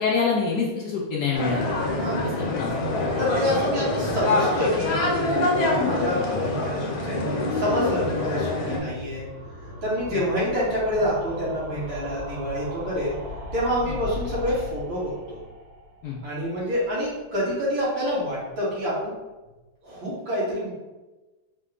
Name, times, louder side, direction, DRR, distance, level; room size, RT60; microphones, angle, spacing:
voice 1, 0.0-1.6 2.5-2.7 10.1-10.2 13.8-13.9 16.0-16.2, left 5 dB, 80° left, -4 dB, 0.8 m, -25 dB
sound 1, 1.3-8.8, left 2 dB, 65° left, 1.1 m, -25 dB
voice 2, 3.2-5.0 5.8-9.2 9.8-13.1 13.5-15.4 16.2-19.1 19.8-20.7, equal, 65° right, -8 dB, 2.3 m, -27 dB
sound 2, 5.7-17.5 17.8-17.9 18.1-18.2 18.4-18.5, left 2 dB, 85° right, 2.2 m, -40 dB
5.1 x 2.2 x 3.7 m, 1.1 s
omnidirectional pair, 2.3 m